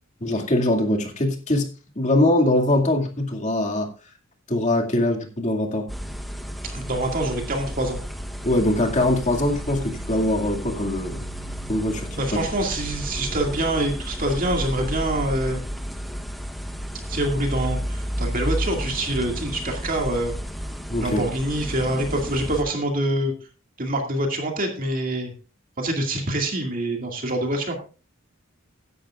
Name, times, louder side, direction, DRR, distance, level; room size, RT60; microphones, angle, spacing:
voice 1, 0.2-1.7 2.0-3.9 4.5-5.9 8.4-11.2 11.7-12.2 20.9-21.2, left 1 dB, 35° left, 2 dB, 2.3 m, -22 dB
sound 1, 5.9-22.6, equal, ahead, 1.0 m, -32 dB
voice 2, 6.7-8.0 12.2-15.6 17.1-20.3 21.0-23.3 23.8-25.3 25.8-27.8, right 1 dB, 45° right, 2 dB, 2.2 m, -25 dB
15.5 x 10.5 x 2.4 m, 0.34 s
head